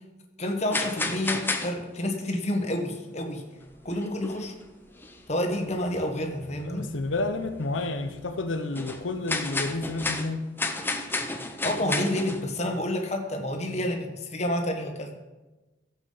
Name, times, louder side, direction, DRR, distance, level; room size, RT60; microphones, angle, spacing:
voice 1, 0.4-3.5 3.8-4.5 5.3-6.9 11.6-15.1, left 1 dB, 35° left, 3 dB, 1.4 m, -29 dB
sound 1, 0.7-2.7 3.4-3.5 3.9-4.6 5.0-5.2 5.7-5.8 6.1-6.2 6.9-7.1 7.7-7.9 8.3-12.7, left 2 dB, 10° left, 0.7 m, -31 dB
Truck, 3.6-10.0, equal, 85° right, 4.4 m, -55 dB
voice 2, 6.6-10.5, left 2 dB, 90° left, 6 dB, 0.8 m, -30 dB
13.0 x 7.3 x 5.6 m, 1.2 s
head